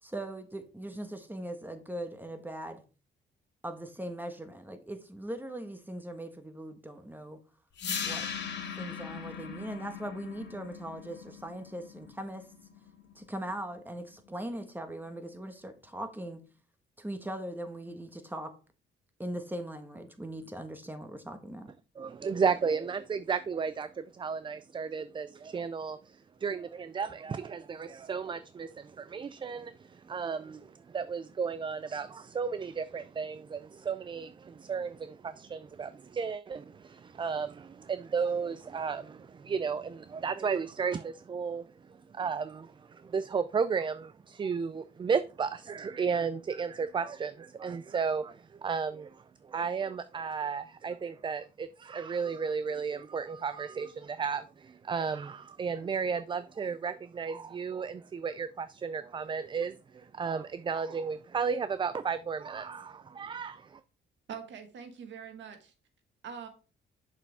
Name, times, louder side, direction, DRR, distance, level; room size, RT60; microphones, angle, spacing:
voice 1, 0.0-2.8 3.6-7.4 8.0-8.3 8.8-12.5 13.1-16.4 17.0-18.5 19.2-21.7, right 1 dB, 10° right, 1.3 m, -40 dB
sound 1, 7.8-13.8, left 7 dB, 60° left, 2.0 m, -40 dB
voice 2, 22.0-41.7 42.1-63.8, right 6 dB, 25° right, 0.3 m, -34 dB
voice 3, 64.3-65.7 66.2-66.5, right 7 dB, 65° right, 1.6 m, -43 dB
6.7 x 5.9 x 3.4 m
cardioid pair, 90°, 20 cm